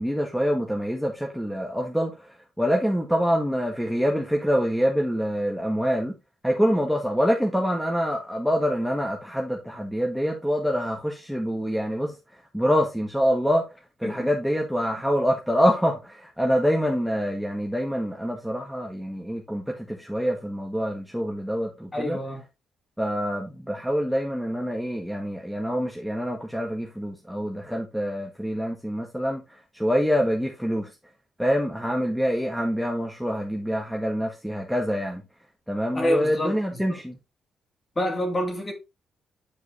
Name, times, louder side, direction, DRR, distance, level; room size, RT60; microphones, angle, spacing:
voice 1, 0.0-2.1 2.6-6.2 6.4-12.1 12.5-13.6 14.0-22.2 23.0-29.4 29.7-30.9 31.4-35.2 35.7-37.2, equal, ahead, 1.7 m, -25 dB
voice 2, 21.9-22.4 35.9-36.8 37.9-38.7, left 1 dB, 25° left, 3.1 m, -27 dB
9.0 x 4.7 x 3.2 m
cardioid pair, 90°, 0 cm